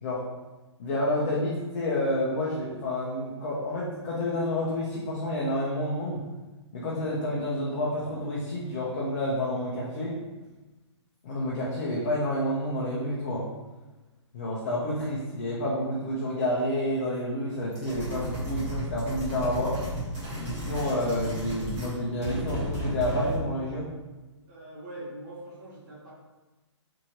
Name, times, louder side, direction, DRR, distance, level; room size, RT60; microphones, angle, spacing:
voice 1, 0.8-6.2 6.7-10.1 11.2-13.5 14.3-19.8 20.4-23.9, left 1 dB, 35° left, -6 dB, 0.6 m, -29 dB
sound 1, 17.7-21.9 22.2-23.5, equal, 20° right, 1.1 m, -33 dB
voice 2, 24.5-26.1, right 1 dB, 40° right, -9 dB, 1.4 m, -42 dB
2.8 x 2.7 x 2.8 m, 1.1 s
hypercardioid pair, 155°, 16 cm